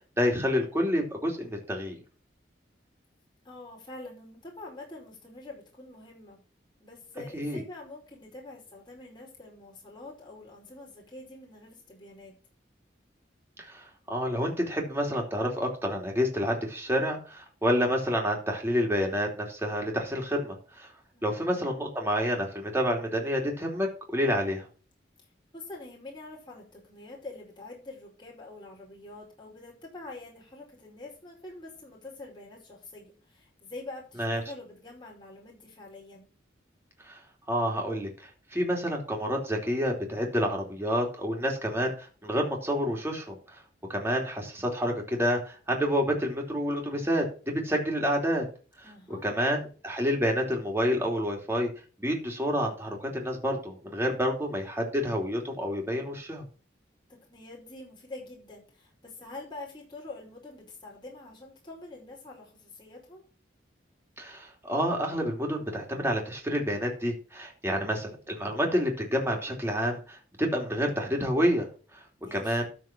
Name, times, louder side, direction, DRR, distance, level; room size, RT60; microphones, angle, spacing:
voice 1, 0.2-2.0 7.3-7.6 13.6-20.9 21.2-24.7 34.2-34.4 37.0-37.2 37.5-43.6 43.9-48.5 49.1-51.7 52.0-56.5 64.2-71.7 71.9-72.0 72.3-72.7, equal, 15° right, 0 dB, 2.9 m, -29 dB
voice 2, 3.4-6.4 6.8-12.3 21.1-21.5 25.5-36.3 48.8-49.4 57.1-63.2 72.2-72.6, left 2 dB, 25° left, -2 dB, 4.9 m, -45 dB
13.0 x 4.7 x 6.1 m, 0.37 s
head